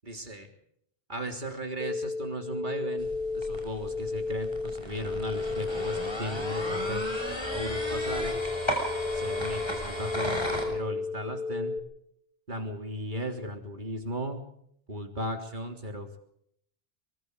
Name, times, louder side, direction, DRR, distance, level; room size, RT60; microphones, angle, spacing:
voice 1, 0.0-0.5 1.1-3.1 3.3-8.4 9.1-11.7 12.5-14.4 14.9-16.2, equal, 45° right, 4 dB, 3.6 m, -36 dB
sound 1, 1.8-11.8, left 3 dB, 40° left, 3.8 m, -33 dB
sound 2, 3.0-10.6, equal, 25° left, 6.3 m, -35 dB
24.0 x 23.5 x 5.0 m, 0.70 s
omnidirectional pair, 1.1 m